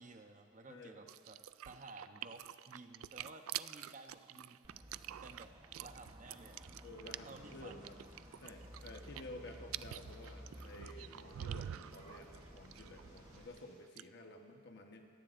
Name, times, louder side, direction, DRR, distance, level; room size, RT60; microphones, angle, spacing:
voice 1, 0.0-1.4 1.6-4.6 5.2-5.5 5.8-6.6 7.3-8.0, right 2 dB, 35° right, 5 dB, 0.9 m, -54 dB
voice 2, 0.7-1.0 6.8-8.0 8.4-15.1, left 1 dB, 55° left, 3 dB, 1.2 m, -52 dB
sound 1, 1.1-13.6 13.8-14.0, right 11 dB, 75° right, 0.3 m, -47 dB
sound 2, 4.6-13.5, equal, 20° right, 1.1 m, -55 dB
Thunder / Rain, 7.1-13.7, left 1 dB, 35° left, 4.9 m, -63 dB
25.0 x 17.5 x 2.6 m, 2.2 s
head